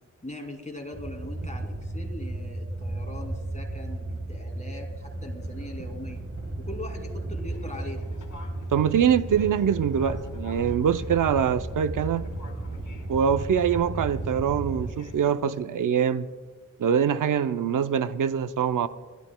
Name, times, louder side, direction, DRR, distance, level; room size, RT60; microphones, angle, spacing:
voice 1, 0.2-6.2 6.6-8.0, left 1 dB, 25° left, 2 dB, 2.5 m, -40 dB
sound 1, 0.9-14.9, right 2 dB, 50° right, 3.2 m, -34 dB
Fixed-wing aircraft airplane, 7.5-15.3, left 3 dB, 70° left, 3.0 m, -46 dB
voice 2, 8.7-12.3 13.1-16.3 16.8-18.9, right 8 dB, 80° right, 11 dB, 0.5 m, -24 dB
30.0 x 12.0 x 2.2 m, 1.4 s
wide cardioid pair, 75°, 31 cm